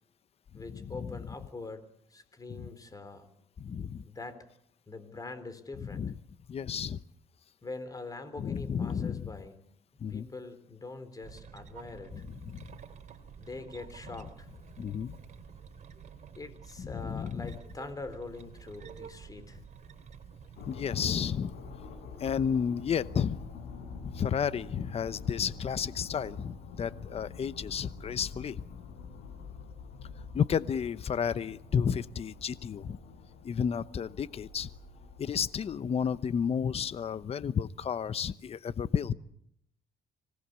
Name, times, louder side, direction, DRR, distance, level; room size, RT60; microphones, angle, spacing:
voice 1, 0.5-3.3 4.0-4.4 4.9-6.0 7.6-9.6 10.1-12.2 13.4-14.5 16.4-19.6 22.1-22.2, left 3 dB, 20° left, 11 dB, 3.8 m, -44 dB
voice 2, 3.6-4.0 5.8-6.1 6.5-7.0 8.4-9.3 10.0-10.3 12.1-12.7 14.8-15.2 16.8-17.5 20.7-21.5 22.2-23.4 24.0-28.6 30.3-33.0 33.4-34.7 35.2-39.1, left 7 dB, 35° left, 15 dB, 0.9 m, -32 dB
sound 1, 11.2-20.7, right 6 dB, 45° right, 3.1 m, -50 dB
sound 2, 20.6-37.2, left 4 dB, 70° left, 5.9 m, -46 dB
25.5 x 19.0 x 8.3 m, 0.73 s
cardioid pair, 110°, 17 cm